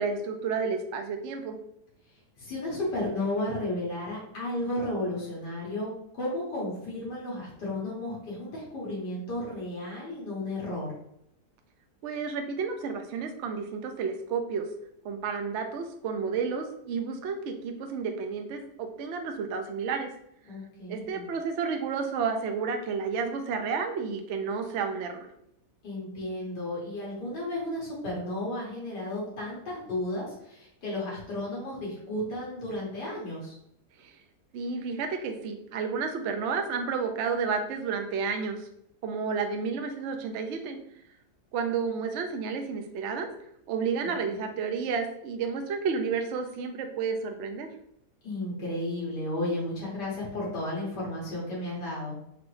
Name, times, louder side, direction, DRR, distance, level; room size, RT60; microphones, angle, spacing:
voice 1, 0.0-1.5 12.0-14.7 15.0-20.1 20.9-25.3 34.0-34.1 34.5-38.7 39.0-40.8 41.5-43.3 43.7-47.7, right 5 dB, 65° right, 5 dB, 0.7 m, -31 dB
voice 2, 2.4-10.9 20.5-21.3 25.8-33.6 44.3-44.4 48.2-52.1, left 1 dB, 85° left, -6 dB, 2.2 m, -33 dB
4.6 x 3.0 x 3.1 m, 0.75 s
omnidirectional pair, 1.8 m